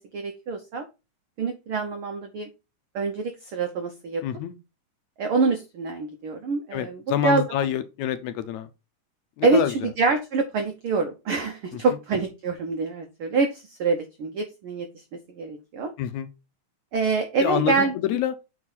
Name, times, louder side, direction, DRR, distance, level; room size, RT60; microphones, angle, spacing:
voice 1, 0.1-0.8 1.4-2.5 2.9-4.2 5.2-7.4 9.4-15.0 15.3-15.9 16.9-17.9, right 4 dB, 80° right, 1.2 m, -25 dB
voice 2, 4.2-4.6 6.7-8.7 9.4-9.7 11.7-11.8 16.0-16.3 17.4-18.3, left 11 dB, 75° left, 1.9 m, -27 dB
7.1 x 4.9 x 4.0 m
omnidirectional pair, 3.6 m